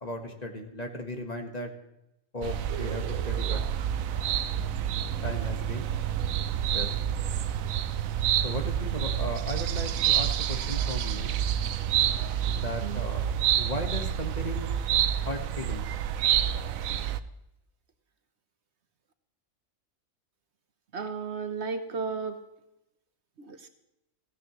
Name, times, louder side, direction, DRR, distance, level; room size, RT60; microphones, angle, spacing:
voice 1, 0.0-1.7 2.3-3.6 5.2-5.9 6.7-7.0 8.4-11.4 12.5-14.7 15.2-15.8, left 1 dB, 30° left, 4 dB, 1.5 m, -36 dB
sound 1, 2.4-17.2, right 10 dB, 85° right, 1.1 m, -28 dB
voice 2, 20.9-22.4 23.4-23.7, right 5 dB, 60° right, 8 dB, 1.2 m, -34 dB
16.0 x 15.5 x 3.1 m, 0.87 s
omnidirectional pair, 1.4 m